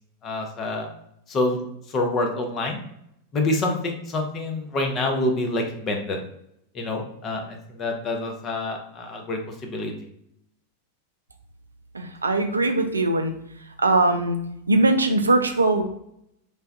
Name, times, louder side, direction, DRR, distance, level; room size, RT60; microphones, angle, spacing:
voice 1, 0.2-0.9 1.3-2.8 3.3-6.2 6.7-9.9, left 2 dB, 30° left, 3 dB, 0.6 m, -27 dB
voice 2, 11.9-13.3 13.8-14.4 14.7-15.8, right 2 dB, 80° right, 6 dB, 0.3 m, -20 dB
3.3 x 2.2 x 2.6 m, 0.76 s
figure-of-eight pair, 90°, 0 cm